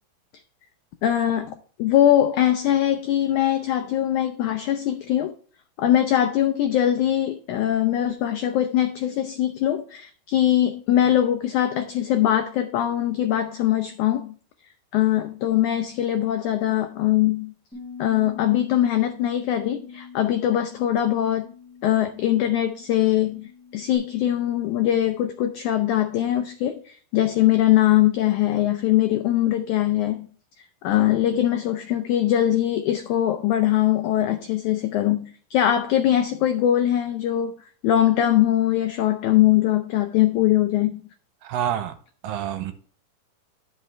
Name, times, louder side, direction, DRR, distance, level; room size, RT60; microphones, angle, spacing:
voice 1, 1.0-5.3 5.8-14.3 14.9-17.5 18.0-21.5 21.8-30.3 30.6-37.6 37.8-41.0, left 12 dB, 85° left, 1.7 m, -22 dB
Bass guitar, 17.7-24.0, left 6 dB, ahead, 4.3 m, -43 dB
voice 2, 41.4-42.0 42.2-42.7, right 10 dB, 80° right, 2.3 m, -27 dB
11.5 x 5.5 x 3.3 m
omnidirectional pair, 4.2 m